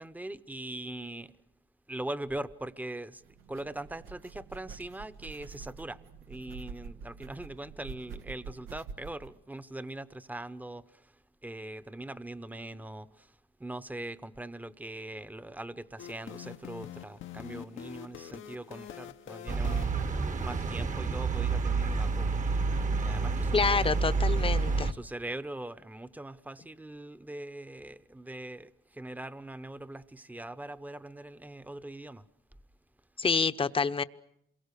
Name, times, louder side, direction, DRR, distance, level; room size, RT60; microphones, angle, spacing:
voice 1, 0.0-1.3 1.9-11.1 11.4-22.4 22.9-23.9 24.9-32.3, right 1 dB, 10° right, 0.9 m, -41 dB
sound 1, 3.2-9.3, right 5 dB, 90° right, 1.0 m, -47 dB
sound 2, 16.0-20.6, left 10 dB, 75° left, 1.0 m, -45 dB
sound 3, 19.5-24.9, right 4 dB, 40° right, 1.2 m, -29 dB
voice 2, 23.5-24.9 33.2-34.0, left 5 dB, 25° left, 0.9 m, -27 dB
27.5 x 23.0 x 6.8 m
cardioid pair, 90°, 20 cm